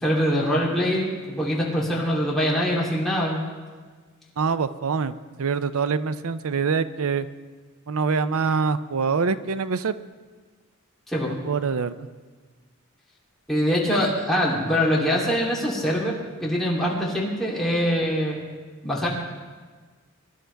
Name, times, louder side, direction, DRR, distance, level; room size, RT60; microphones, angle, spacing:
voice 1, 0.0-3.4 11.1-11.3 13.5-18.4 18.8-19.1, equal, ahead, -6 dB, 3.0 m, -23 dB
voice 2, 4.4-7.3 7.9-9.9 11.4-12.1, right 5 dB, 80° right, 13 dB, 0.6 m, -25 dB
23.0 x 11.0 x 3.4 m, 1.4 s
head